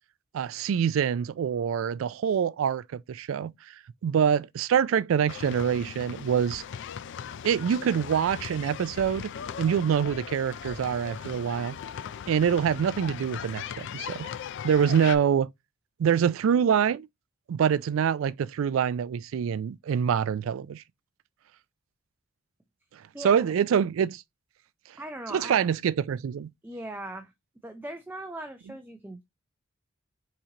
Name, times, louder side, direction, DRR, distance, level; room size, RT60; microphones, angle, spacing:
voice 1, 0.3-3.7 4.0-6.6 7.4-9.3 9.6-11.8 12.3-14.3 14.6-15.5 16.0-17.1 17.5-20.8 22.9-24.2 25.3-26.5, right 8 dB, 75° right, 0.3 m, -25 dB
sound 1, 5.3-15.2, left 8 dB, 60° left, 0.4 m, -39 dB
voice 2, 23.1-23.5 25.0-25.6 26.6-27.3 27.6-29.2, right 1 dB, 10° right, 0.4 m, -39 dB
4.3 x 3.8 x 2.8 m
head